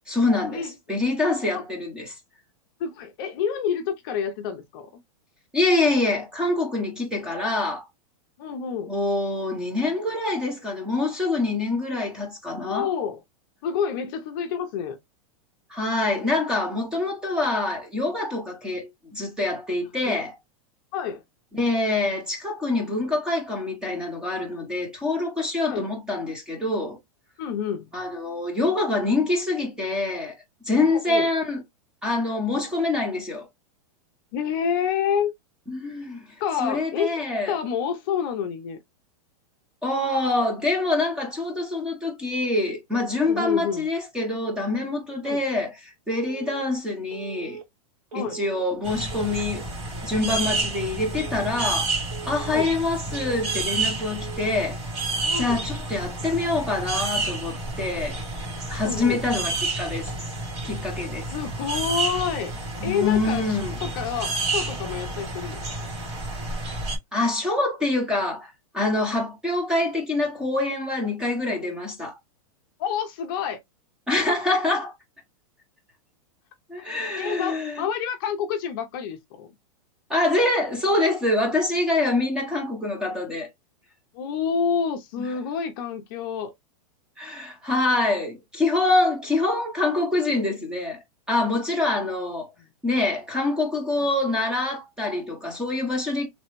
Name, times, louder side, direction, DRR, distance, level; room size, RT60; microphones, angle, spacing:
voice 1, 0.1-0.6 0.9-2.1 5.5-7.8 8.9-12.9 15.7-20.3 21.5-27.0 27.9-30.4 30.7-31.6 32.0-33.5 35.7-36.3 36.6-37.6 39.8-45.7 46.1-47.6 48.1-49.7 50.0-51.9 52.3-54.8 55.4-58.2 58.7-60.1 60.6-61.3 62.8-63.8 67.1-72.2 74.1-74.9 76.7-77.8 80.1-83.5 87.2-91.0 91.3-92.5 92.8-96.3, left 2 dB, 5° right, 0.8 m, -25 dB
voice 2, 2.8-4.9 8.4-8.9 12.6-13.2 13.6-15.0 20.0-20.2 20.9-21.2 25.7-25.9 27.4-27.9 30.8-31.3 34.3-35.3 36.4-38.8 43.2-43.9 45.2-45.4 48.1-48.4 52.5-52.7 55.2-55.6 58.8-59.2 61.3-62.5 62.8-65.9 72.8-73.6 76.8-76.9 77.2-79.5 84.1-86.5, left 7 dB, 35° left, 0.6 m, -28 dB
Telephone, 46.1-46.6 47.1-47.6 48.1-48.6 49.1-49.6 50.1-50.6 51.1-51.6 52.1-52.6 53.1-53.6 54.1-54.6, right 8 dB, 80° right, 1.2 m, -40 dB
sound 1, 48.8-67.0, right 2 dB, 50° right, 2.2 m, -30 dB
3.3 x 3.0 x 3.0 m
supercardioid pair, 170°, 18 cm